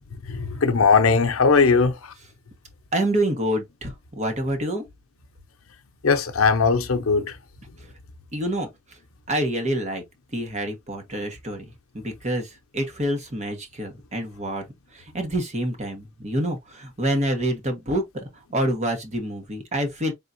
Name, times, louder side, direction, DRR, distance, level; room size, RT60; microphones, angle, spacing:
voice 1, 0.3-2.1 6.0-7.4, left 5 dB, 80° left, 0.7 m, -19 dB
voice 2, 2.9-4.8 8.3-8.7 9.3-10.0 10.3-14.6 14.9-20.1, right 1 dB, 35° right, 1.3 m, -27 dB
3.9 x 3.7 x 2.6 m
head